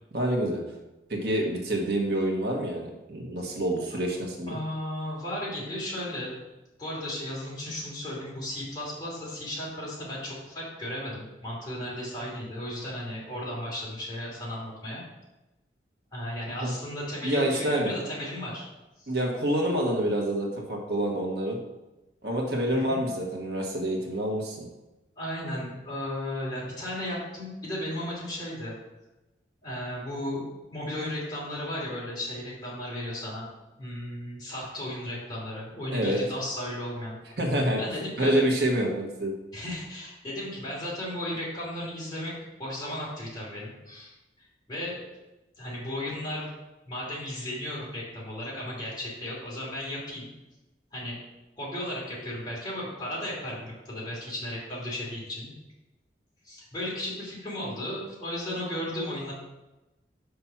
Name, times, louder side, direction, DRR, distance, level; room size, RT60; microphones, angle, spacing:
voice 1, 0.1-0.6 1.1-4.6 16.6-16.7 17.2-17.9 19.1-21.6 22.2-24.7 35.9-36.2 37.4-37.8 38.2-39.3, right 1 dB, 60° right, 0 dB, 1.3 m, -27 dB
voice 2, 4.5-6.3 6.8-15.0 16.1-18.7 19.0-19.1 22.7-23.0 25.2-28.8 29.6-30.5 30.7-33.5 33.7-37.2 37.8-38.5 39.5-45.0 45.6-46.5 46.8-50.3 50.9-51.2 51.6-55.5 56.4-59.3, left 1 dB, 25° left, -6 dB, 3.0 m, -35 dB
5.8 x 5.2 x 5.8 m, 1.0 s
head